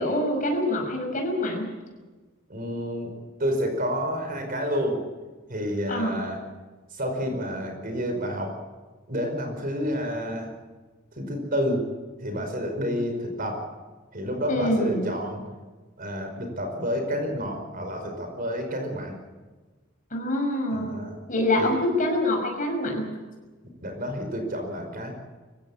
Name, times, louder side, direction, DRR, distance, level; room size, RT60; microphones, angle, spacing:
voice 1, 0.0-1.7 5.9-6.2 14.5-15.1 20.1-20.9 21.3-23.1, left 1 dB, 40° left, 2 dB, 6.2 m, -25 dB
voice 2, 2.5-3.1 3.4-5.0 5.5-6.4 6.9-8.5 9.1-10.5 11.2-11.8 12.2-13.6 14.1-15.4 16.0-19.1 20.7-21.2 21.6-21.7 23.8-25.1, equal, 45° right, 4 dB, 5.1 m, -29 dB
24.5 x 16.0 x 8.5 m, 1.3 s
head